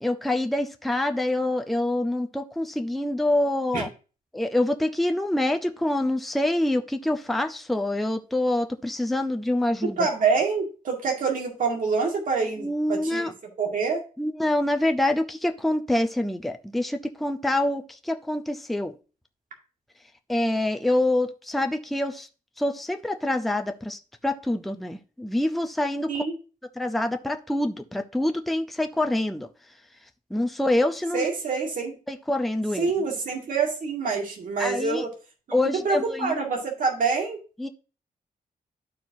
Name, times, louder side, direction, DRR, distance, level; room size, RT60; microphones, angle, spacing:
voice 1, 0.0-3.9 4.3-10.0 12.6-13.3 14.2-18.9 20.3-22.3 22.6-26.1 26.8-29.5 30.3-31.3 32.1-32.9 34.6-35.0 35.5-36.4 37.6-37.7, left 1 dB, ahead, 0.5 m, -26 dB
voice 2, 10.0-13.3 13.6-14.0 26.1-26.3 31.1-32.0 32.8-35.1 35.5-35.6 35.8-37.4, right 4 dB, 65° right, 2.0 m, -26 dB
12.0 x 4.7 x 2.7 m
wide cardioid pair, 150°, 15 cm